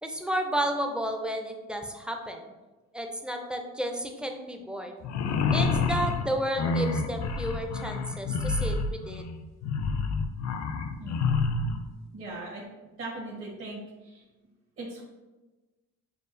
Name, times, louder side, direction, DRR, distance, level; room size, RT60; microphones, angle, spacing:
voice 1, 0.0-2.4 2.9-4.9 5.5-9.2, right 1 dB, 5° right, 4 dB, 0.5 m, -32 dB
sound 1, 5.0-11.8, left 4 dB, 60° left, 0.5 m, -28 dB
voice 2, 12.1-12.6 13.0-14.2 14.8-15.0, right 2 dB, 50° right, -5 dB, 1.2 m, -39 dB
6.7 x 2.4 x 2.6 m, 1.1 s
cardioid pair, 90°, 30 cm